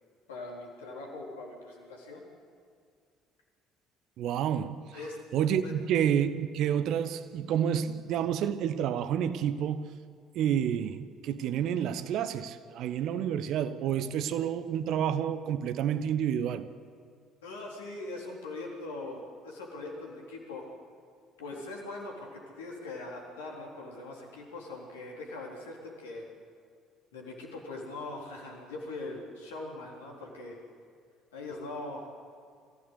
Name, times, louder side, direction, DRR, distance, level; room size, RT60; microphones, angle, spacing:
voice 1, 0.3-2.2 4.9-5.2 5.6-5.7 17.4-20.7 21.4-26.3 27.1-30.6 31.3-32.0, left 2 dB, 75° left, 3.8 m, -41 dB
voice 2, 4.2-4.9 5.3-9.9 10.3-16.7, right 9 dB, 55° right, 1.0 m, -29 dB
24.0 x 15.5 x 8.1 m
figure-of-eight pair, 55°, 0 cm